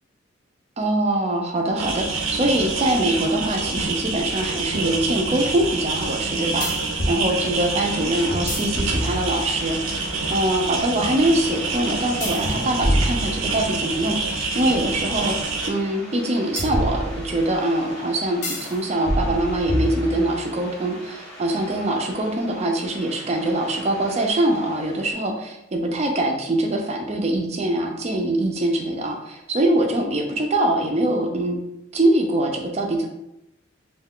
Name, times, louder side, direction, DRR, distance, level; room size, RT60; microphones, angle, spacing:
voice 1, 0.8-9.8 10.3-15.4 15.7-31.6 31.9-33.1, right 1 dB, 30° right, 2 dB, 0.4 m, -23 dB
sound 1, 1.8-15.7, right 3 dB, 80° right, 0.6 m, -27 dB
sound 2, 4.2-4.3 6.6-7.2 8.3-9.6 12.2-13.9 16.6-17.6 18.4-18.7 19.1-20.4, equal, 35° left, 0.4 m, -26 dB
sound 3, 8.7-25.1, equal, 5° left, 0.8 m, -42 dB
2.3 x 2.3 x 3.5 m, 0.83 s
head